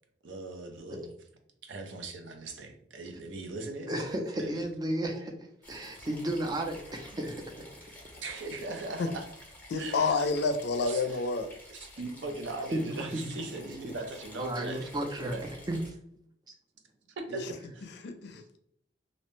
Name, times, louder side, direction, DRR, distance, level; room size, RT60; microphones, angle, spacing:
voice 1, 0.2-1.1 1.6-4.6 6.0-6.1 8.2-9.2 9.7-10.3 10.9-11.2 11.7-14.9 15.2-15.4 17.2-17.5 17.7-17.9, right 2 dB, 85° right, 4 dB, 0.5 m, -39 dB
voice 2, 3.9-5.3 5.7-7.3 12.7-12.9 13.1-13.2 14.4-15.4 15.7-15.8, right 1 dB, 20° right, 3 dB, 0.5 m, -33 dB
sound 1, 5.6-15.9, left 1 dB, 10° left, 0.7 m, -51 dB
voice 3, 9.7-11.5 17.4-17.5 18.0-18.6, left 4 dB, 65° left, 7 dB, 0.4 m, -29 dB
2.6 x 2.1 x 3.0 m, 0.69 s
head